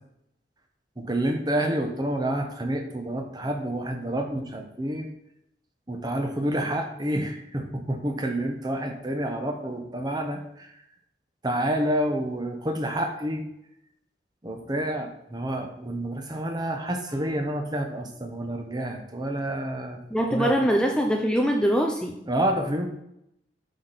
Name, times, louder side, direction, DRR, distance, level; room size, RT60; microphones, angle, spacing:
voice 1, 1.0-5.1 5.9-10.7 11.4-13.5 14.4-20.0 20.3-20.5 22.3-22.9, right 1 dB, 25° right, 4 dB, 1.0 m, -28 dB
voice 2, 20.1-22.2, equal, 5° left, 2 dB, 0.6 m, -23 dB
8.4 x 6.0 x 4.2 m, 0.78 s
head